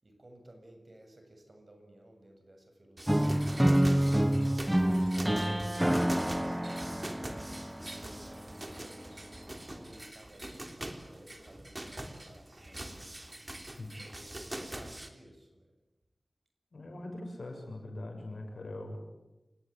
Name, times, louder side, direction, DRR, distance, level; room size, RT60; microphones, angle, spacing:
voice 1, 0.0-4.6 5.1-7.3 7.9-13.0 13.9-15.7, right 1 dB, 50° right, 4 dB, 7.5 m, -56 dB
sound 1, 3.0-15.1, right 1 dB, 30° right, 3.3 m, -44 dB
sound 2, 3.1-9.0, right 1 dB, 10° right, 1.0 m, -28 dB
voice 2, 16.7-19.0, left 2 dB, 80° left, 3 dB, 7.1 m, -42 dB
29.0 x 19.0 x 9.1 m, 1.1 s
wide cardioid pair, 60°, 0 cm